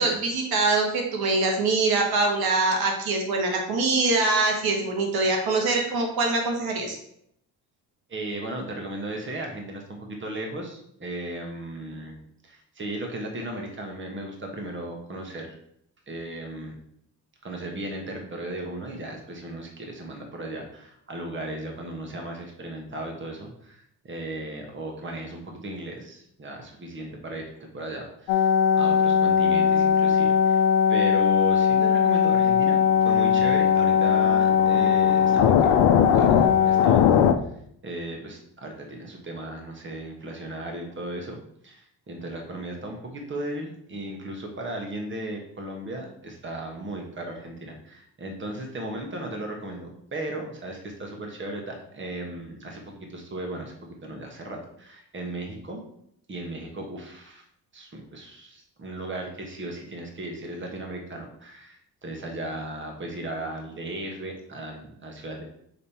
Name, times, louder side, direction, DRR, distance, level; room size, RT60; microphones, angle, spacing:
voice 1, 0.0-7.0, right 3 dB, 75° right, 1 dB, 1.5 m, -24 dB
voice 2, 8.1-12.2 12.4-15.6 16.1-16.8 17.4-27.4 27.7-30.6 30.9-35.7 36.1-37.1 37.8-55.8 56.3-57.4 57.7-65.4, right 1 dB, 30° right, 2 dB, 1.4 m, -36 dB
sound 1, 28.3-37.3, left 8 dB, 90° left, 0.6 m, -19 dB
6.5 x 3.6 x 4.3 m, 0.71 s
cardioid pair, 90°, 37 cm